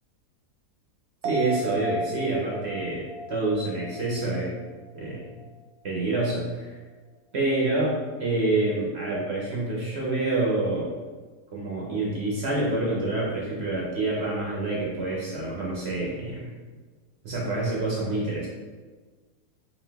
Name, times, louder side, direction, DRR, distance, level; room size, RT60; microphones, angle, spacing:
voice 1, 1.2-4.6 4.9-5.2 5.8-6.8 7.3-10.9 11.5-16.5 17.2-18.5, right 2 dB, 50° right, -4 dB, 0.8 m, -27 dB
sound 1, 1.2-4.9 5.3-5.4, right 1 dB, 85° right, 0.5 m, -35 dB
4.1 x 2.6 x 3.4 m, 1.4 s
omnidirectional pair, 1.7 m